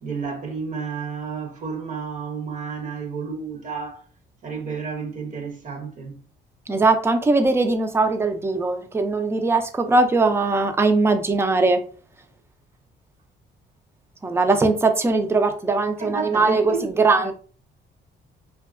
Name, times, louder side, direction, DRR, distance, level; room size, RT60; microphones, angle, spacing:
voice 1, 0.0-4.1 4.4-6.2 16.0-16.9 17.2-17.3, right 5 dB, 40° right, 0.7 m, -31 dB
voice 2, 6.7-11.8 14.2-17.3, right 3 dB, 10° right, 0.4 m, -20 dB
2.6 x 2.3 x 2.4 m
cardioid pair, 90°, 20 cm